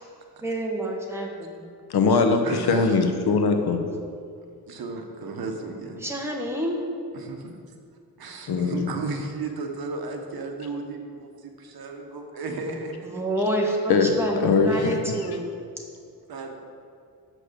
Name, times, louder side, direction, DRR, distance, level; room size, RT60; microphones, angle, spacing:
voice 1, 0.4-1.7 6.0-6.8 13.0-14.4 14.6-15.5, right 1 dB, 5° right, -1 dB, 1.3 m, -28 dB
voice 2, 1.9-3.8 8.5-8.9 13.9-15.1, left 4 dB, 75° left, 6 dB, 1.0 m, -21 dB
voice 3, 2.4-2.9 4.7-6.0 7.1-7.6 8.2-13.1 16.3-16.6, right 3 dB, 65° right, 3 dB, 1.2 m, -34 dB
6.4 x 6.2 x 6.7 m, 2.3 s
wide cardioid pair, 125°, 39 cm